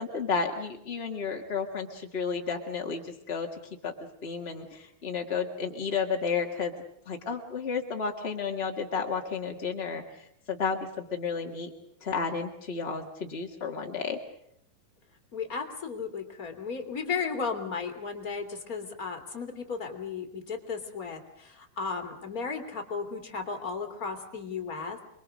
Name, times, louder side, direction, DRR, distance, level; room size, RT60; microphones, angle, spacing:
voice 1, 0.0-3.5 3.8-3.9 4.2-6.7 7.0-11.7 12.0-14.2, left 5 dB, 85° left, 2 dB, 0.5 m, -32 dB
voice 2, 15.3-25.0, left 5 dB, 25° left, 4 dB, 2.3 m, -35 dB
27.0 x 22.5 x 6.4 m, 0.74 s
omnidirectional pair, 4.6 m